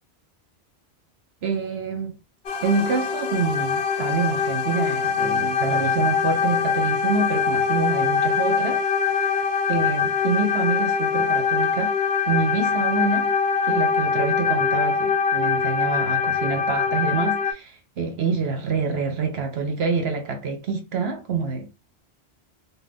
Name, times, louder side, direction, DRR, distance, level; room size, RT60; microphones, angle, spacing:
voice 1, 1.4-2.2 2.6-8.8 9.1-11.9 12.3-13.3 13.6-21.7, right 5 dB, 70° right, 1.0 m, -27 dB
sound 1, 2.5-17.5, left 6 dB, 70° left, 0.9 m, -23 dB
2.7 x 2.2 x 3.4 m
omnidirectional pair, 1.1 m